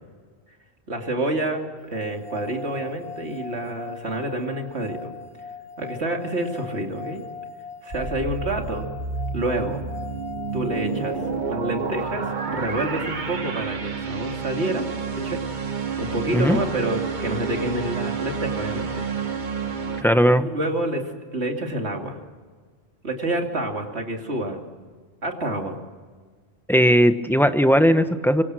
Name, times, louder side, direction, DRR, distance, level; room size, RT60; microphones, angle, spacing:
voice 1, 0.9-5.1 5.8-7.2 7.8-8.9 9.3-9.8 10.5-11.2 11.5-14.9 15.1-15.4 16.0-19.0 20.4-21.0 21.3-22.2 23.0-24.6 25.2-25.8, right 1 dB, 60° right, 3 dB, 3.0 m, -28 dB
sound 1, 1.9-12.1, left 5 dB, 55° left, 1.5 m, -40 dB
sound 2, 7.9-20.0, right 5 dB, 40° right, 1.4 m, -29 dB
voice 2, 20.0-20.5 26.7-28.4, equal, ahead, 9 dB, 0.9 m, -17 dB
25.5 x 24.5 x 6.3 m, 1.5 s
omnidirectional pair, 1.3 m